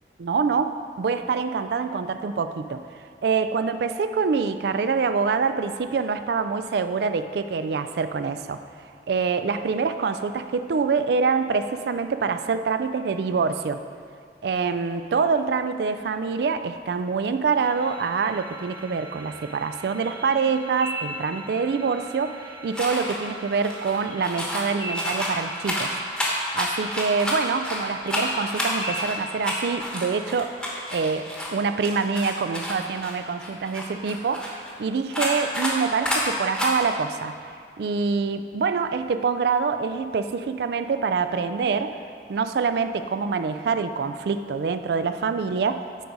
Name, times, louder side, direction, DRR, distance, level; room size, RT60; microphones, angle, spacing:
voice 1, 0.2-2.8 3.2-8.6 9.1-13.8 14.4-25.9 26.5-30.5 30.9-37.4 37.8-42.0 42.3-46.0, right 5 dB, 65° right, 10 dB, 0.3 m, -25 dB
sound 1, 17.6-30.1, right 1 dB, 20° right, 1.2 m, -39 dB
sound 2, 22.7-23.2 23.5-24.7 24.9-27.8 28.1-31.5 31.8-34.7 35.1-35.7 36.0-36.2 36.5-36.7, left 1 dB, 5° left, 1.0 m, -29 dB
9.1 x 4.0 x 5.0 m, 2.2 s
head